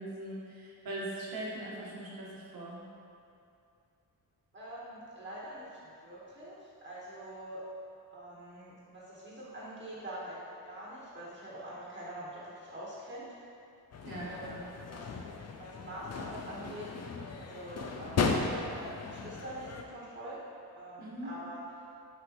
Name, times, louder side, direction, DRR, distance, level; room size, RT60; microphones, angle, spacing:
voice 1, 0.0-2.8 14.0-14.6 21.0-21.3, right 1 dB, 65° right, -5 dB, 1.5 m, -41 dB
voice 2, 4.5-7.6 8.1-13.3 14.2-14.6 14.9-15.1 15.5-16.9 17.4-20.4 20.7-21.6, right 1 dB, 30° right, -8 dB, 1.3 m, -45 dB
sound 1, 13.9-19.8, left 4 dB, 45° left, 0.4 m, -36 dB
7.8 x 5.1 x 3.0 m, 2.6 s
wide cardioid pair, 145°, 38 cm